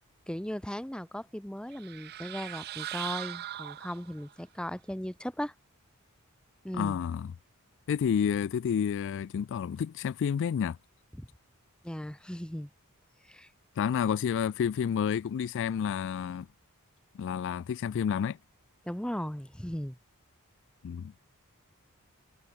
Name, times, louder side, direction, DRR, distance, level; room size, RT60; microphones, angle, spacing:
voice 1, 0.3-5.5 6.6-7.0 11.1-11.3 11.8-12.7 13.2-13.5 18.8-20.0, equal, 5° left, 0.9 m, -37 dB
sound 1, 1.7-4.3, right 13 dB, 45° right, 0.4 m, -40 dB
voice 2, 6.7-7.3 7.9-10.8 13.8-16.5 17.1-18.4 20.8-21.1, left 7 dB, 55° left, 0.3 m, -30 dB
head